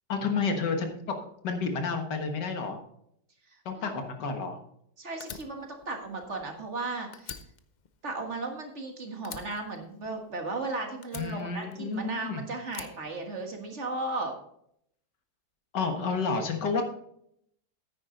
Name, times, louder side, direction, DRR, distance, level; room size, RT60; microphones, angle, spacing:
voice 1, 0.1-1.2 1.4-2.8 3.7-4.6 11.1-12.4 15.7-16.8, left 4 dB, 85° left, 5 dB, 2.1 m, -30 dB
voice 2, 5.0-7.4 8.0-14.3 16.2-16.4, right 3 dB, 45° right, 3 dB, 1.8 m, -35 dB
Fire, 5.2-6.8 7.1-8.9 9.2-10.6 11.0-12.2 12.7-13.9, left 6 dB, 60° left, 0.4 m, -46 dB
9.6 x 9.6 x 3.9 m, 0.71 s
omnidirectional pair, 1.8 m